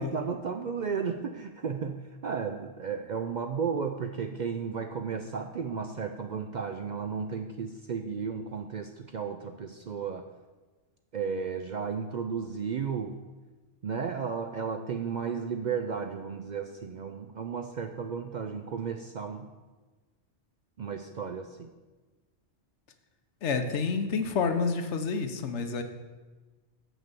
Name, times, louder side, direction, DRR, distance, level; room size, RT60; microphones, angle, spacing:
voice 1, 0.0-10.3 11.1-13.2 13.8-19.5 20.8-21.7, right 6 dB, 55° right, 5 dB, 0.5 m, -34 dB
voice 2, 23.4-25.8, left 5 dB, 75° left, 7 dB, 1.1 m, -29 dB
7.4 x 6.1 x 6.7 m, 1.3 s
omnidirectional pair, 1.2 m